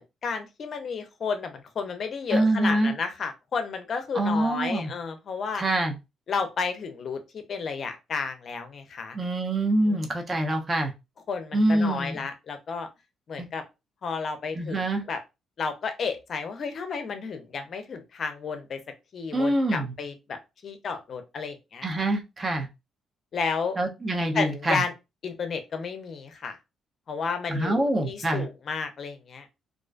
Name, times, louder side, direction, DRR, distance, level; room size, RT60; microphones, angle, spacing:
voice 1, 0.0-5.6 6.3-9.2 9.9-10.0 11.3-12.9 13.3-13.6 14.0-15.2 15.6-18.8 19.1-21.9 23.3-23.8 24.3-24.9 25.2-26.6 27.1-29.5, left 5 dB, 55° left, 7 dB, 0.5 m, -32 dB
voice 2, 2.3-2.9 4.1-4.9 5.5-6.0 9.1-10.9 11.5-12.2 13.4-13.5 14.5-15.0 19.3-19.9 21.8-22.7 23.8-24.8 27.5-28.5, right 1 dB, 30° right, 3 dB, 0.6 m, -25 dB
2.4 x 2.2 x 2.4 m, 0.24 s
cardioid pair, 90°, 0 cm